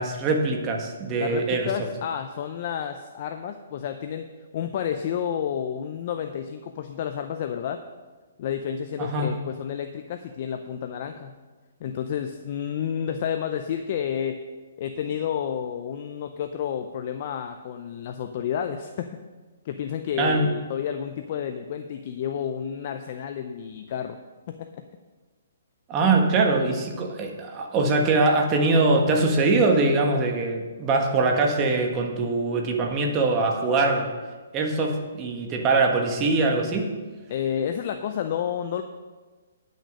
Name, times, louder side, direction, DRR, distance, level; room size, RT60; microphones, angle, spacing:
voice 1, 0.0-1.7 9.0-9.3 20.2-20.5 25.9-34.1 34.5-36.9, right 3 dB, 20° right, 2 dB, 1.4 m, -22 dB
voice 2, 1.2-4.3 4.5-7.8 8.4-11.4 11.8-14.4 14.8-19.2 19.6-24.2 24.5-24.7 37.3-38.8, left 8 dB, 40° left, 7 dB, 0.6 m, -30 dB
10.5 x 6.4 x 6.6 m, 1.3 s
hypercardioid pair, 155°, 0 cm